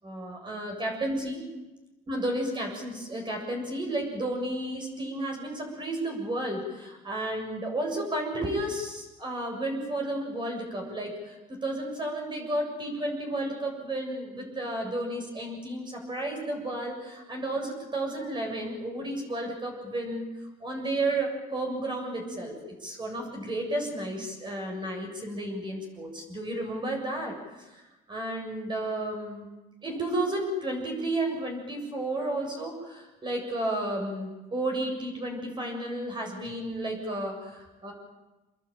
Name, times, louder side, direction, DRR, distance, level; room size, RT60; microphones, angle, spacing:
voice 1, 0.0-1.4 2.1-20.3 20.6-22.5 22.8-27.3 28.1-29.5 29.8-37.9, right 1 dB, 25° right, 1 dB, 7.4 m, -32 dB
26.5 x 21.5 x 9.0 m, 1.1 s
cardioid pair, 110°, 17 cm